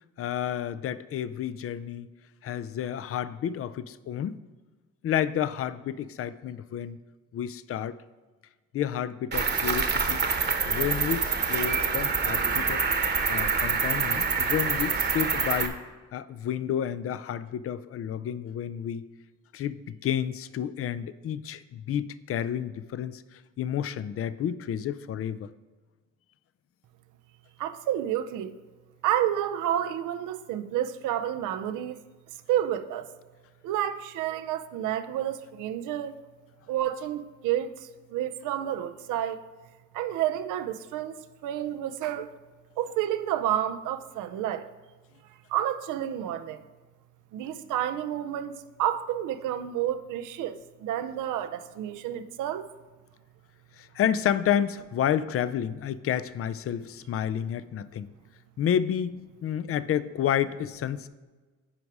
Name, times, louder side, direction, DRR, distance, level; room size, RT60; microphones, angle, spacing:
voice 1, 0.2-2.1 2.4-4.4 5.0-7.0 7.3-7.9 8.7-10.2 10.6-12.8 13.3-15.8 16.1-19.0 19.5-25.5 53.8-58.1 58.6-59.2 59.4-61.1, left 9 dB, 50° left, 0.5 m, -30 dB
Cricket, 9.3-15.7, right 5 dB, 35° right, 1.1 m, -26 dB
voice 2, 27.6-28.6 29.0-32.0 32.5-33.1 33.6-36.1 36.7-39.5 39.9-42.3 42.8-44.7 45.3-46.6 47.3-52.7, right 11 dB, 90° right, 0.6 m, -30 dB
10.5 x 4.9 x 4.7 m
cardioid pair, 90°, 30 cm